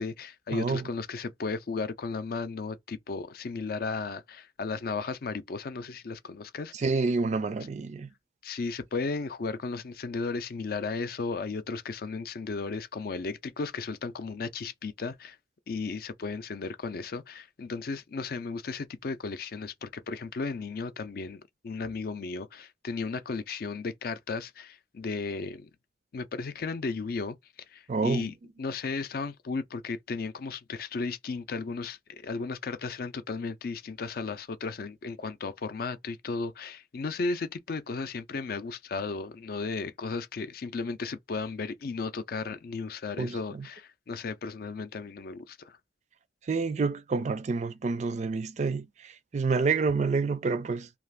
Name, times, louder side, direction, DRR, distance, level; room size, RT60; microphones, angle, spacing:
voice 1, 0.0-6.7 8.4-15.4 15.7-25.7 26.1-27.4 27.7-45.8, left 4 dB, 55° left, 0.4 m, -35 dB
voice 2, 0.5-0.9 6.7-8.1 27.9-28.3 43.2-43.6 46.5-50.9, right 4 dB, 40° right, 0.4 m, -28 dB
2.4 x 2.4 x 3.3 m
head